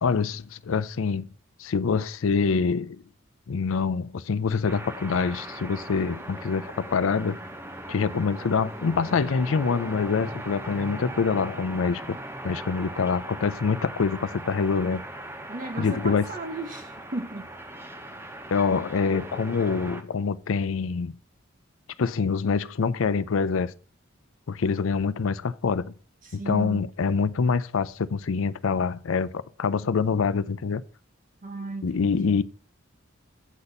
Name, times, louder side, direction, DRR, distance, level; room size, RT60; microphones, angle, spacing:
voice 1, 0.0-1.3 1.6-3.0 3.5-7.4 7.9-12.2 12.4-15.0 15.8-16.2 18.5-21.1 22.0-23.7 24.5-25.9 26.3-30.8 31.8-32.4, left 5 dB, 75° left, 0.5 m, -25 dB
sound 1, 4.7-20.0, right 1 dB, 10° right, 0.7 m, -39 dB
voice 2, 15.5-17.5 26.2-26.9 31.4-32.4, right 2 dB, 40° right, 0.9 m, -35 dB
8.3 x 4.1 x 6.5 m
head